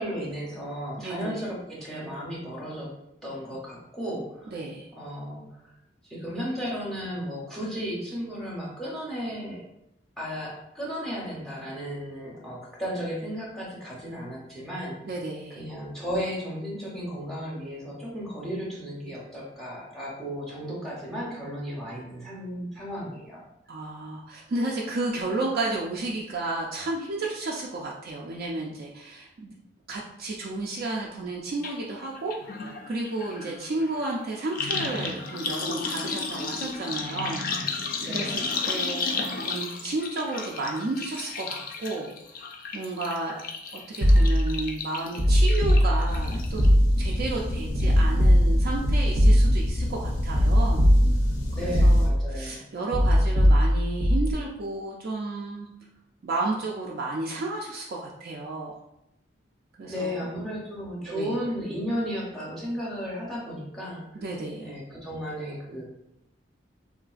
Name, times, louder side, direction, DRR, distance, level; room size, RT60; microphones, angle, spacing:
voice 1, 0.0-2.9 3.2-4.5 4.9-5.6 6.0-9.6 10.2-15.0 15.5-23.4 38.0-38.5 51.5-52.6 59.9-64.2 64.6-65.8, equal, ahead, -5 dB, 0.6 m, -34 dB
voice 2, 1.0-1.4 4.5-4.9 15.0-15.7 23.7-29.5 29.9-37.5 38.1-42.1 42.7-43.4 43.9-46.6 47.0-50.9 51.6-55.7 56.2-58.7 59.8-60.3 61.1-61.4 64.1-64.7, right 2 dB, 55° right, -2 dB, 0.3 m, -32 dB
sound 1, 31.6-31.7 32.0-46.7 47.1-47.5 47.8-47.9, left 4 dB, 50° left, 0.3 m, -33 dB
sound 2, 44.0-44.6 45.2-46.2 46.6-47.2 47.8-49.8 50.3-51.4 51.7-52.4 52.9-54.3, equal, 90° right, 0.7 m, -20 dB
sound 3, 46.1-52.1, left 1 dB, 90° left, 0.6 m, -31 dB
3.6 x 2.4 x 2.4 m, 0.84 s
head